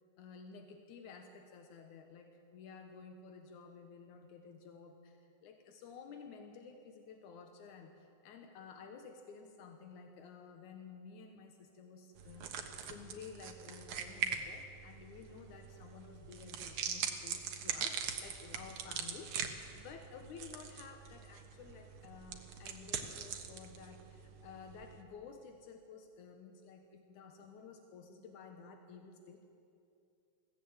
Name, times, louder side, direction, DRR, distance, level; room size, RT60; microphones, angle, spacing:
voice 1, 0.2-29.5, left 5 dB, 85° left, 5 dB, 2.6 m, -53 dB
sound 1, 12.2-25.0, right 7 dB, 80° right, 2.7 m, -42 dB
21.0 x 16.0 x 8.8 m, 2.6 s
omnidirectional pair, 3.3 m